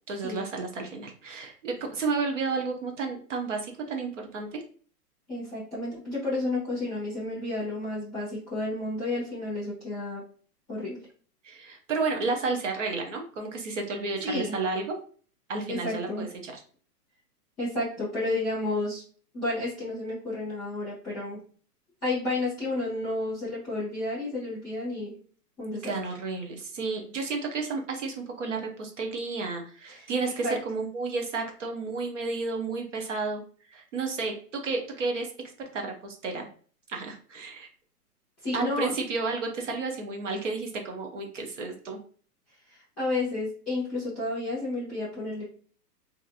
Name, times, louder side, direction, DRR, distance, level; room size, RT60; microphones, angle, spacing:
voice 1, 0.1-4.6 11.4-15.0 15.5-16.5 25.8-33.4 33.7-35.3 35.7-36.5 36.9-37.7 38.5-42.0, right 4 dB, 50° right, 2 dB, 0.6 m, -32 dB
voice 2, 5.3-10.2 10.7-11.0 14.2-14.5 15.7-16.2 17.6-19.0 19.3-21.4 22.0-25.2 25.6-25.9 29.9-30.1 30.4-30.6 38.4-38.9 42.7-45.4, left 2 dB, ahead, -20 dB, 0.5 m, -31 dB
2.8 x 2.5 x 2.3 m, 0.43 s
hypercardioid pair, 165°, 48 cm